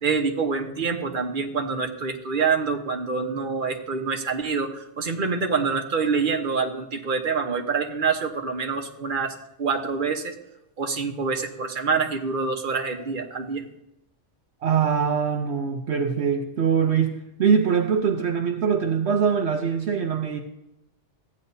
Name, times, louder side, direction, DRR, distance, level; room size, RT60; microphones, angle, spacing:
voice 1, 0.0-10.3 10.8-13.6, right 5 dB, 45° right, 3 dB, 1.2 m, -26 dB
voice 2, 14.6-20.4, right 6 dB, 65° right, 3 dB, 1.0 m, -23 dB
15.0 x 9.6 x 2.7 m, 0.87 s
omnidirectional pair, 1.2 m